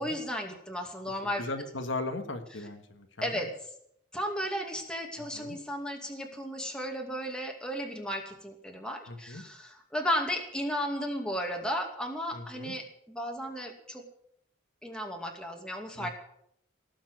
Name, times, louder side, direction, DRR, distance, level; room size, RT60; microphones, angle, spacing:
voice 1, 0.0-1.4 3.2-3.5 4.1-14.0 14.8-16.1, equal, 5° left, 1 dB, 2.3 m, -34 dB
voice 2, 1.4-3.5 5.3-5.6 9.1-9.4 12.3-12.7 16.0-16.1, left 2 dB, 70° left, 6 dB, 1.6 m, -38 dB
18.5 x 7.4 x 9.1 m, 0.71 s
head